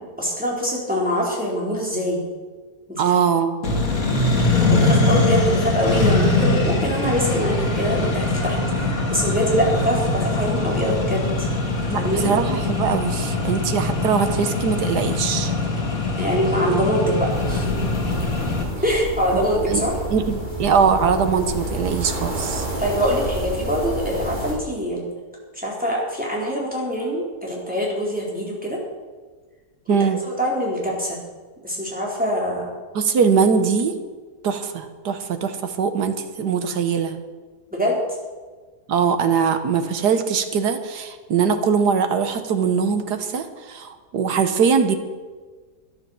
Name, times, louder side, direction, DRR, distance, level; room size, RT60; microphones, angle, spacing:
voice 1, 0.2-2.2 2.9-3.2 4.7-11.5 11.9-12.3 16.2-17.7 18.8-20.0 22.8-25.1 25.5-28.8 29.9-31.2 31.6-32.7 37.7-38.0, equal, 5° right, -4 dB, 3.9 m, -24 dB
voice 2, 3.0-3.6 11.9-15.5 19.3-19.8 20.1-22.7 29.9-30.2 32.9-34.0 34.4-37.2 38.9-45.0, right 6 dB, 75° right, 8 dB, 1.7 m, -21 dB
Accelerating revving vroom, 3.6-18.6, left 2 dB, 55° left, 2.7 m, -22 dB
sound 1, 17.3-24.5, right 1 dB, 25° right, 3.4 m, -29 dB
13.0 x 10.5 x 7.1 m, 1.4 s
omnidirectional pair, 1.8 m